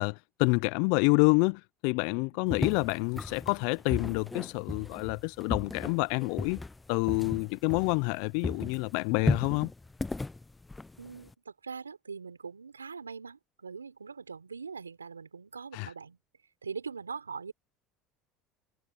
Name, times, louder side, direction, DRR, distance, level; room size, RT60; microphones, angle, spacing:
voice 1, 0.0-6.6 6.9-9.7 15.7-15.9, left 32 dB, 65° left, 0.7 m, -28 dB
sound 1, 2.5-8.2 8.4-11.3, left 2 dB, 15° left, 1.0 m, -35 dB
voice 2, 11.0-16.2 16.6-17.5, right 5 dB, 90° right, 3.8 m, -42 dB
hypercardioid pair, 70°, 0 cm